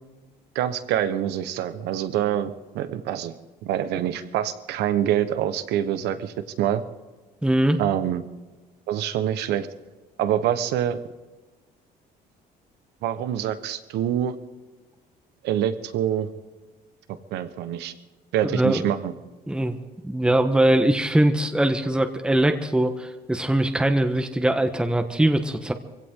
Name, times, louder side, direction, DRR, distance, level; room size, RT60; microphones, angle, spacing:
voice 1, 0.5-3.4 3.6-6.8 7.8-8.2 8.9-9.7 10.2-11.0 13.0-14.4 15.4-16.3 17.3-17.9 18.3-19.1, right 10 dB, 85° right, 11 dB, 1.3 m, -25 dB
voice 2, 7.4-7.8 18.5-18.8 19.5-19.8 20.0-25.7, right 1 dB, 5° right, 6 dB, 1.2 m, -21 dB
23.0 x 16.5 x 3.8 m, 1.2 s
cardioid pair, 110°, 17 cm